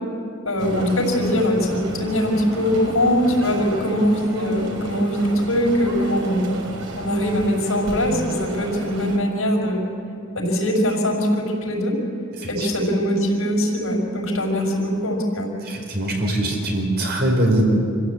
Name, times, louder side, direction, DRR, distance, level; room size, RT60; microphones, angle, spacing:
voice 1, 0.4-6.4 7.0-9.8 10.4-12.0 12.5-15.5, equal, 85° left, 0 dB, 5.7 m, -21 dB
sound 1, 0.6-9.2, right 2 dB, 90° right, 3.3 m, -33 dB
voice 2, 12.4-12.7 15.6-17.6, right 1 dB, 50° right, 1 dB, 4.8 m, -22 dB
26.5 x 15.5 x 8.6 m, 2.6 s
head